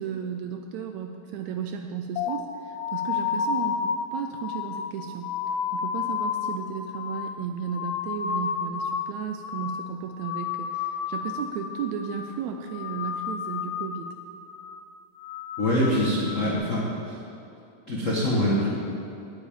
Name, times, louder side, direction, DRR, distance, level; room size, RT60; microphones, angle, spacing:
voice 1, 0.0-5.3 5.7-14.1, right 7 dB, 80° right, 5 dB, 1.7 m, -34 dB
sound 1, 2.2-9.1 9.4-9.9 10.2-11.6 11.9-12.4 12.7-14.1 14.5-14.8 15.2-16.5, left 7 dB, 80° left, 1.5 m, -31 dB
voice 2, 15.6-17.2 17.9-18.7, equal, 55° left, -5 dB, 0.8 m, -24 dB
8.9 x 7.3 x 8.8 m, 2.8 s
omnidirectional pair, 3.6 m